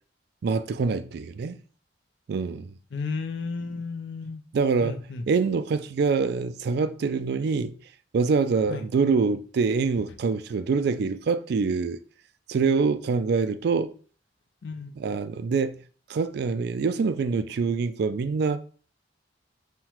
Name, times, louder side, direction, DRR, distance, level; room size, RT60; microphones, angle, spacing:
voice 1, 0.4-1.6 2.3-2.8 4.5-5.0 5.3-7.8 8.1-12.0 12.5-13.9 15.0-15.8 16.1-18.6, right 4 dB, 60° right, 0.3 m, -25 dB
voice 2, 2.9-4.4 4.8-5.2 8.7-8.8 14.6-15.1, left 4 dB, 70° left, 0.4 m, -33 dB
5.6 x 2.2 x 3.0 m
head